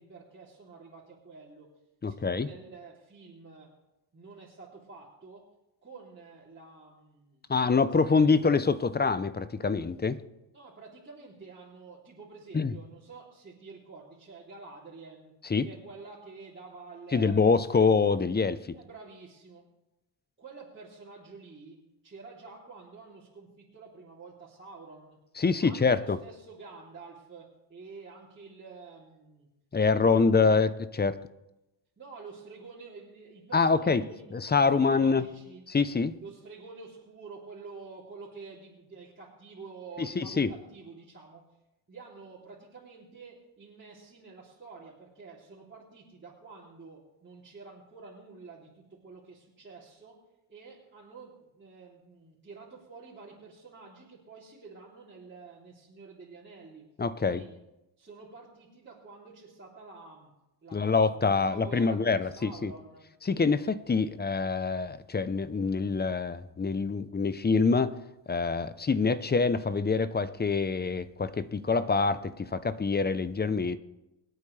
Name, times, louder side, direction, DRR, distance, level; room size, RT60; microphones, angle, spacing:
voice 1, 0.0-1.8 2.1-3.7 4.1-5.5 5.8-8.4 10.5-15.3 15.6-17.6 18.7-19.6 20.4-25.2 25.6-29.5 29.8-30.6 32.0-34.3 34.7-35.7 36.2-41.4 41.9-50.2 50.5-56.8 57.2-57.6 58.0-60.3 60.6-63.0, right 4 dB, 25° right, 3.4 m, -49 dB
voice 2, 2.0-2.5 7.5-10.2 12.5-12.7 15.5-15.7 17.1-18.8 25.4-26.2 29.7-30.7 31.0-31.2 33.5-34.1 34.3-35.3 35.7-36.2 40.0-40.5 57.0-57.4 60.7-62.7 63.3-68.0 68.3-73.8, left 4 dB, 20° left, 0.8 m, -25 dB
24.5 x 8.6 x 3.4 m
supercardioid pair, 85°, 49 cm